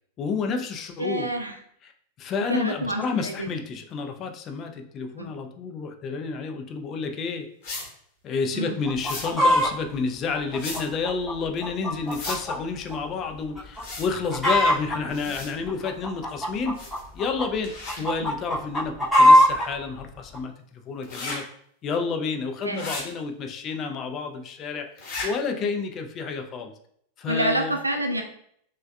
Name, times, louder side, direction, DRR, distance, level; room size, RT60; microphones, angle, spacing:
voice 1, 0.2-1.3 2.2-7.5 8.2-16.8 17.1-17.7 18.0-21.4 21.8-24.9 25.2-26.7 27.2-27.8, left 5 dB, 30° left, 5 dB, 0.3 m, -30 dB
voice 2, 1.0-1.6 2.5-3.5 5.2-5.3 8.5-8.8 15.2-15.3 22.6-22.9 25.6-25.7 27.3-28.2, right 1 dB, 85° right, 3 dB, 0.3 m, -28 dB
sound 1, 7.6-7.9 9.0-9.3 10.5-10.8 12.1-12.4 13.7-14.1 15.1-15.5 16.8-17.1 17.6-18.0 21.0-21.4 22.7-23.0 25.0-25.3, left 3 dB, 50° left, 1.0 m, -35 dB
Chicken rooster, 8.9-9.7 10.3-12.6 12.9-13.0 13.6-13.8 14.1-15.0 15.7-17.4 17.9-19.7 20.3-20.4, equal, 5° left, 0.7 m, -20 dB
3.2 x 2.2 x 2.2 m, 0.66 s
figure-of-eight pair, 90°, 0 cm